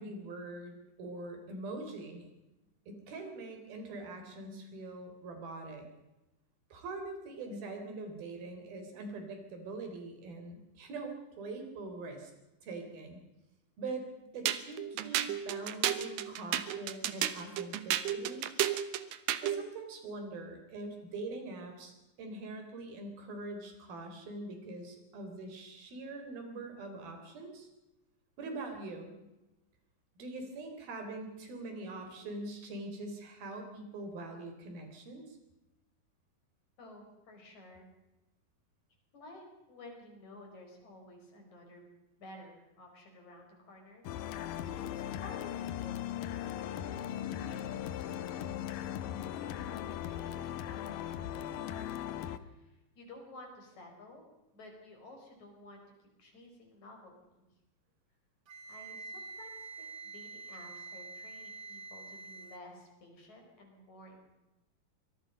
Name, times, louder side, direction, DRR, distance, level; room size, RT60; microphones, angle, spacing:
voice 1, 0.0-2.2 2.9-5.9 6.7-12.3 12.6-13.2 13.8-14.1 14.3-18.5 19.4-27.7 28.4-29.2 30.2-35.4, right 2 dB, 90° right, 5 dB, 5.5 m, -43 dB
sound 1, 14.5-19.6, right 11 dB, 75° right, 2.6 m, -32 dB
voice 2, 36.8-37.9 39.1-47.0 47.3-48.8 49.4-52.0 52.3-57.5 58.7-64.3, left 1 dB, 55° left, 2 dB, 6.2 m, -54 dB
sound 2, 44.1-52.4, left 11 dB, 75° left, 2.6 m, -38 dB
Wind instrument woodwind instrument, 58.5-62.7, right 3 dB, 50° right, 1.3 m, -46 dB
24.5 x 21.0 x 5.4 m, 1.0 s
omnidirectional pair, 4.1 m